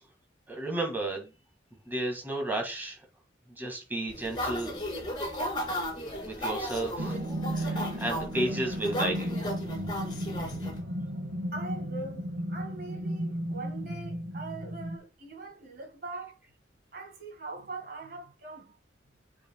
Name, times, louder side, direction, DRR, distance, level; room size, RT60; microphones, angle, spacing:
voice 1, 0.5-1.3 1.9-3.0 3.6-4.8 6.2-7.2 7.5-9.3, right 1 dB, 10° right, 1.9 m, -33 dB
sound 1, 4.1-10.8, equal, 25° left, 2.7 m, -35 dB
sound 2, 7.0-15.0, equal, 80° right, 1.6 m, -34 dB
voice 2, 10.9-16.4 16.9-18.8, right 3 dB, 55° right, 2.0 m, -42 dB
8.9 x 4.8 x 2.3 m
head